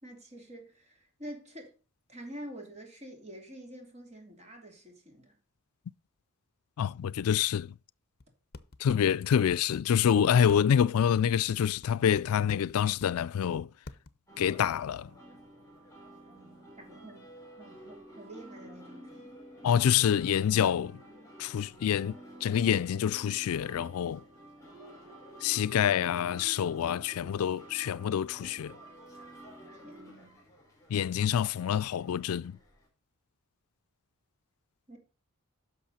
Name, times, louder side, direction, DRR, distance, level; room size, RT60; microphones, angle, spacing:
voice 1, 0.0-1.7 2.1-5.4 16.3-17.3 17.6-19.3 29.8-30.4 34.9-35.0, right 1 dB, 30° right, 3.0 m, -47 dB
voice 2, 6.8-7.7 8.8-13.7 14.4-15.1 19.6-21.0 21.4-22.1 22.4-24.2 25.4-28.7 30.9-32.6, left 8 dB, 80° left, 0.4 m, -27 dB
sound 1, 8.2-8.3 8.5-9.1 9.5-9.6 10.1-10.2 10.5-11.9 12.1-13.1 13.5-13.6 13.9-14.1, left 3 dB, 45° left, 0.7 m, -46 dB
sound 2, 14.3-32.9, equal, 15° left, 4.2 m, -51 dB
10.5 x 6.5 x 4.2 m
head